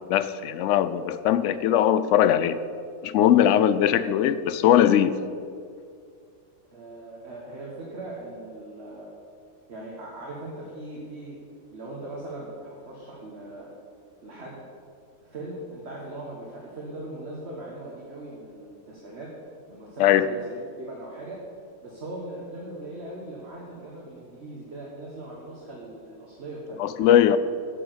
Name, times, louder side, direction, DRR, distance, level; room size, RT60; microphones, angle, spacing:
voice 1, 0.1-2.6 3.0-5.2 20.0-20.3 26.8-27.4, left 10 dB, 70° left, 14 dB, 0.8 m, -20 dB
voice 2, 6.7-9.2 9.7-11.4 11.7-13.7 14.2-14.6 15.2-19.3 19.7-21.5 21.8-27.4, right 1 dB, 50° right, -3 dB, 1.6 m, -40 dB
8.4 x 7.0 x 8.0 m, 2.3 s
omnidirectional pair, 1.4 m